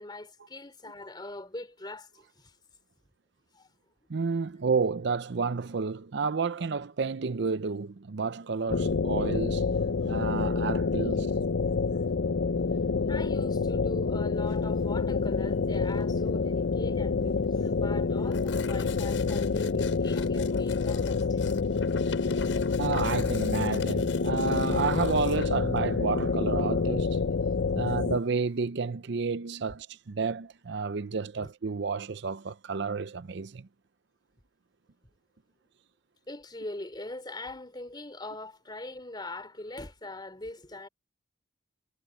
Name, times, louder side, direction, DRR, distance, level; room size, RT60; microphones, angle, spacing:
voice 1, 0.0-2.5 3.5-3.7 11.9-12.0 13.1-21.4 27.8-27.9 31.4-31.5 36.3-40.9, left 2 dB, 25° left, 3.4 m, -42 dB
voice 2, 4.1-9.7 10.1-11.3 22.8-27.2 27.8-33.7, right 4 dB, 65° right, 0.6 m, -31 dB
sound 1, 8.7-28.2, left 4 dB, 65° left, 0.6 m, -27 dB
Tearing, 14.4-28.6, left 8 dB, 80° left, 7.9 m, -48 dB
head